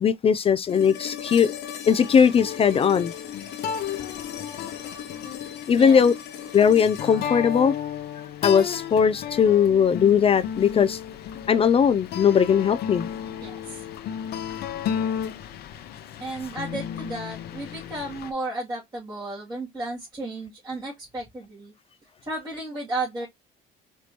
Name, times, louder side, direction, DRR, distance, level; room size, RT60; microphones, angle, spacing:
voice 1, 0.0-1.5 1.9-3.1 5.7-6.1 6.5-7.7 8.4-11.0 11.5-13.1, left 7 dB, 35° left, 0.4 m, -19 dB
sound 1, 0.7-8.7 10.9-11.0, left 9 dB, 85° left, 1.4 m, -38 dB
sound 2, 1.8-18.3, left 8 dB, 70° left, 0.8 m, -34 dB
voice 2, 13.4-13.8 16.2-21.7 22.2-23.3, right 2 dB, 25° right, 2.3 m, -33 dB
5.1 x 3.1 x 2.8 m
cardioid pair, 110°, 17 cm